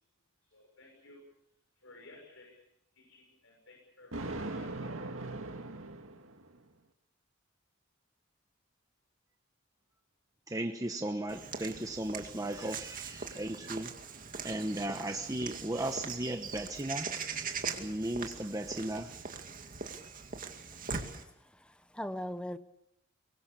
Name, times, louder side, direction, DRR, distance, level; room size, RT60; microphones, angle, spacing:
voice 1, 0.5-1.2 1.8-2.7 2.9-4.7, left 2 dB, 70° left, 0 dB, 6.6 m, -56 dB
Thunder, 4.1-6.6, right 2 dB, 75° right, 2.1 m, -40 dB
voice 2, 10.5-13.9 14.4-17.1 17.8-19.1, right 1 dB, 15° right, 5 dB, 1.1 m, -36 dB
Walk footsteps / Bird vocalization bird call bird song, 11.3-21.2, right 5 dB, 40° right, 2.3 m, -41 dB
voice 3, 21.2-22.6, equal, 5° left, 11 dB, 0.9 m, -40 dB
24.5 x 22.5 x 7.1 m, 0.77 s
head